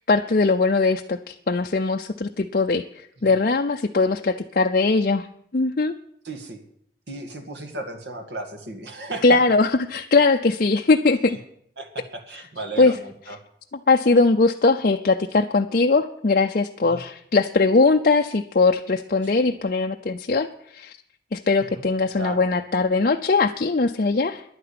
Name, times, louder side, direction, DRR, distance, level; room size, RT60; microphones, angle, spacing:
voice 1, 0.1-5.3 5.5-5.9 9.2-11.4 12.8-12.9 13.9-20.9 21.3-24.4, left 3 dB, 50° left, 4 dB, 0.5 m, -20 dB
voice 2, 6.2-6.6 7.1-9.4 11.3-11.4 11.8-13.4 16.8-17.0 19.2-19.6 21.6-21.9 22.2-22.5, right 2 dB, 70° right, 6 dB, 1.9 m, -35 dB
11.0 x 9.7 x 8.6 m, 0.69 s
head